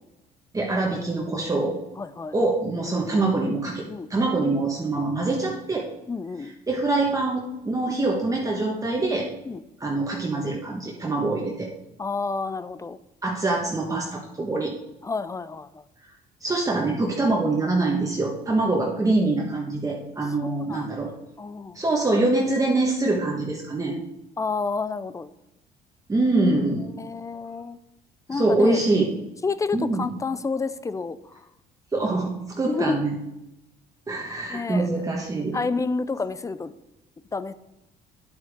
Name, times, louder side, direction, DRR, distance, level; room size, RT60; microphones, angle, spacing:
voice 1, 0.5-1.8 2.3-3.8 4.1-5.9 6.7-9.3 9.8-11.7 13.2-14.7 16.4-21.1 21.7-24.0 26.1-26.9 28.3-29.2 29.7-30.1 31.9-33.1 34.1-35.6, right 2 dB, 20° right, -2 dB, 1.5 m, -24 dB
voice 2, 2.0-2.3 3.9-4.1 6.1-6.5 9.5-9.6 12.0-13.0 15.0-15.8 20.4-20.9 21.4-21.8 23.2-23.3 24.4-25.3 26.9-27.8 28.3-28.8 29.4-31.4 32.7-33.0 34.5-34.9 35.5-36.7 37.3-37.5, left 4 dB, 20° left, 14 dB, 0.5 m, -29 dB
10.0 x 8.6 x 3.6 m, 0.91 s
cardioid pair, 110°, 17 cm